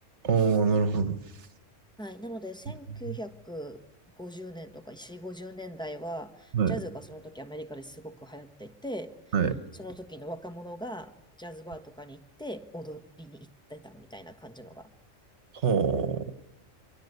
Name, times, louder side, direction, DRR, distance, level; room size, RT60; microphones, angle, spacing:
voice 1, 0.2-1.2 3.1-3.2 6.5-6.8 9.3-9.6 15.6-16.3, right 6 dB, 65° right, 14 dB, 1.5 m, -25 dB
voice 2, 2.0-3.8 4.2-9.2 9.8-14.9, equal, 5° left, 8 dB, 1.3 m, -41 dB
28.0 x 25.0 x 8.1 m, 0.86 s
omnidirectional pair, 1.3 m